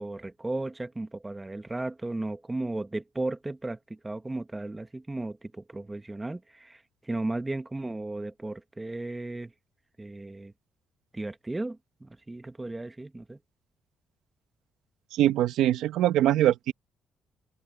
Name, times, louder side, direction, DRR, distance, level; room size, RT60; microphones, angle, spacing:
voice 1, 0.0-9.5 10.0-10.5 11.1-13.4, right 2 dB, 15° right, 1.3 m, -35 dB
voice 2, 15.1-16.7, right 12 dB, 90° right, 1.4 m, -23 dB
open air
cardioid pair, 90°, 0 cm